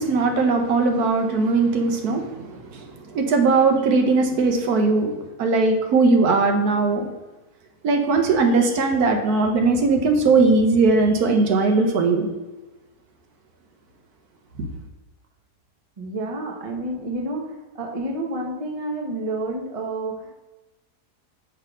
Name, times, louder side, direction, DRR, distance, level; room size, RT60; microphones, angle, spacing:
voice 1, 0.0-7.1 7.8-12.3 14.6-14.7, right 3 dB, 70° right, 4 dB, 1.2 m, -19 dB
voice 2, 16.0-20.3, right 2 dB, 30° right, 0 dB, 0.7 m, -29 dB
5.8 x 3.3 x 4.9 m, 1.1 s
omnidirectional pair, 1.8 m